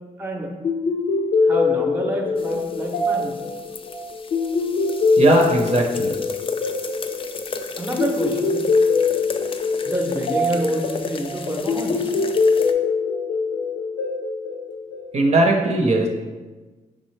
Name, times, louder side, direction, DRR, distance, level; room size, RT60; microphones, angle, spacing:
voice 1, 0.2-0.5 1.5-3.3 7.8-8.6 9.9-12.1, right 1 dB, 15° right, 1 dB, 0.7 m, -27 dB
sound 1, 0.6-15.4, left 4 dB, 85° left, 0.7 m, -23 dB
sound 2, 2.4-12.7, left 4 dB, 40° left, 0.4 m, -34 dB
voice 2, 5.2-6.1 15.1-16.1, right 2 dB, 50° right, 1 dB, 0.7 m, -18 dB
5.0 x 3.2 x 3.2 m, 1.3 s
cardioid pair, 90°, 14 cm